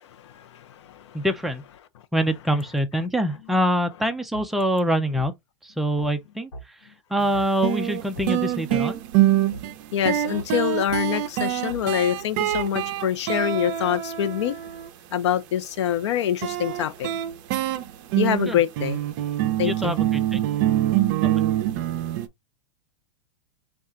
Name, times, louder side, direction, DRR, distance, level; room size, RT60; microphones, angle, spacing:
voice 1, 0.0-1.3 9.9-14.6 15.1-17.1 18.2-19.0 19.6-19.9, left 10 dB, 70° left, 0.7 m, -25 dB
voice 2, 1.1-1.6 2.1-5.3 5.6-6.5 7.1-9.0 18.5-18.6 19.6-20.4 21.2-21.3, equal, ahead, 0.4 m, -24 dB
sound 1, 4.3-4.5 5.1-5.3 6.0-6.1 6.5-6.7 7.3-7.5 8.1-8.3 8.7-8.8 9.5-9.6 10.3-10.5 10.9-11.0 11.7-11.8 12.5-12.7, right 1 dB, 85° left, 1.3 m, -38 dB
sound 2, 7.2-7.3 7.6-14.9 16.4-22.3, right 13 dB, 45° right, 0.6 m, -25 dB
4.3 x 2.4 x 3.6 m
supercardioid pair, 155°, 15 cm